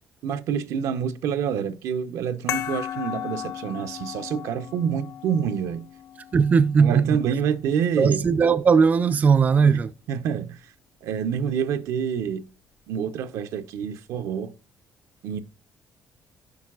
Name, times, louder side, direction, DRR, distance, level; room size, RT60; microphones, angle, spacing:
voice 1, 0.2-5.9 6.8-8.2 9.7-9.8 10.1-10.6 11.0-12.4 12.9-14.5 15.2-15.4, right 7 dB, 80° right, 0.7 m, -27 dB
sound 1, 2.5-7.6, left 10 dB, 75° left, 0.8 m, -36 dB
voice 2, 6.3-7.2 8.0-9.9, right 5 dB, 30° right, 0.4 m, -18 dB
10.5 x 4.6 x 2.4 m
cardioid pair, 115°, 5 cm